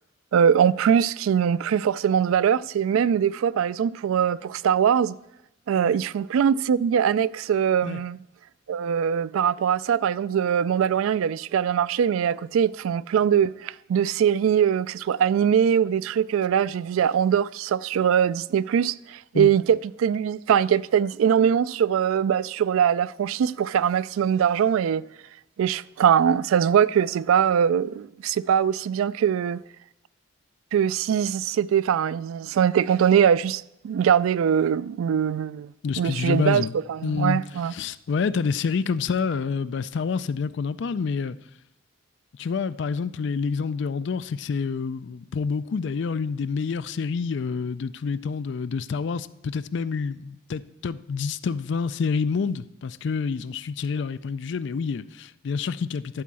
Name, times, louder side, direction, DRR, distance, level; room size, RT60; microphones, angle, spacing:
voice 1, 0.3-5.2 5.7-8.2 8.7-25.0 25.6-29.6 30.7-37.7, right 8 dB, 85° right, 0.3 m, -22 dB
voice 2, 35.8-36.7 37.0-37.4 37.7-41.4 42.4-56.2, left 5 dB, 60° left, 0.4 m, -28 dB
12.5 x 4.6 x 7.5 m
head